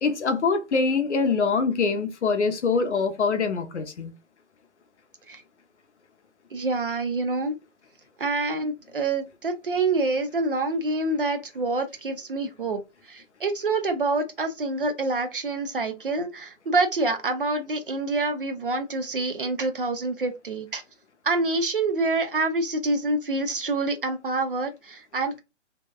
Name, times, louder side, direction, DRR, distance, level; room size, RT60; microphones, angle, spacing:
voice 1, 0.0-4.1, left 4 dB, 65° left, 0.6 m, -24 dB
voice 2, 6.5-7.5 8.2-12.8 13.1-20.8 21.2-25.4, right 3 dB, 45° right, 0.5 m, -26 dB
2.7 x 2.2 x 2.2 m
hypercardioid pair, 160°, 37 cm